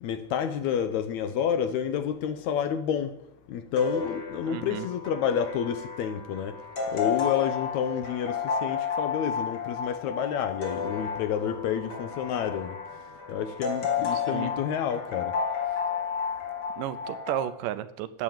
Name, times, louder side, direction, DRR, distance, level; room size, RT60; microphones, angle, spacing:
voice 1, 0.0-3.1 3.5-6.6 6.9-12.8 13.3-15.3, left 8 dB, 75° left, 1.8 m, -29 dB
sound 1, 3.8-17.5, left 6 dB, 40° left, 1.8 m, -32 dB
voice 2, 4.5-4.9 14.3-14.5 16.8-18.2, right 13 dB, 80° right, 2.2 m, -33 dB
9.4 x 7.4 x 8.7 m
omnidirectional pair, 3.9 m